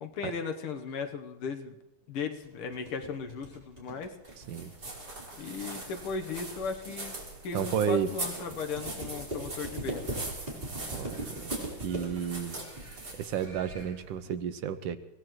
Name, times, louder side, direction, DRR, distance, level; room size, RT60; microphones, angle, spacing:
voice 1, 0.0-1.8 2.1-4.1 5.4-7.2 7.4-10.1, left 5 dB, 85° left, 6 dB, 2.0 m, -36 dB
sound 1, 2.4-14.4, right 1 dB, 20° right, 3.9 m, -40 dB
sound 2, 4.3-14.1, right 2 dB, 50° right, 4.1 m, -42 dB
voice 2, 7.5-8.2 10.9-11.5 11.8-12.6 13.1-15.0, right 8 dB, 70° right, 11 dB, 1.3 m, -32 dB
24.5 x 17.0 x 3.1 m, 0.97 s
omnidirectional pair, 2.3 m